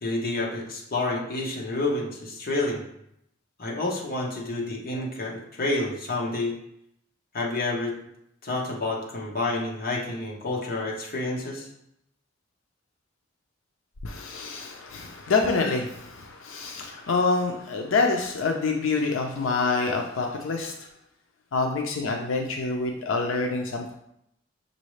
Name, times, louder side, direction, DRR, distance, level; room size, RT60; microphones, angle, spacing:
voice 1, 0.0-2.8 3.6-6.6 7.3-8.0 8.4-11.7, left 2 dB, 50° left, -2 dB, 1.0 m, -29 dB
voice 2, 14.0-20.7 21.5-23.9, left 4 dB, 90° left, 2 dB, 0.5 m, -26 dB
6.2 x 2.7 x 3.1 m, 0.78 s
head